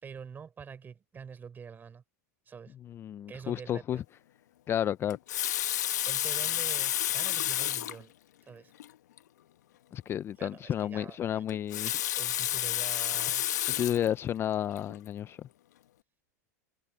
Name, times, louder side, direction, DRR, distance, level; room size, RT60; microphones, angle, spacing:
voice 1, 0.0-2.0 2.5-2.8 3.3-4.0 6.0-8.1 8.5-8.7 10.4-11.4 12.1-13.6, right 6 dB, 20° right, 5.2 m, -46 dB
voice 2, 2.9-4.0 4.7-5.2 9.9-11.9 13.8-15.4, left 10 dB, 25° left, 0.5 m, -31 dB
Water tap faucet, 5.1-8.0 8.8-8.9 9.2-9.3 11.5-14.1 14.8-15.0, left 13 dB, 75° left, 1.4 m, -30 dB
hypercardioid pair, 115°, 9 cm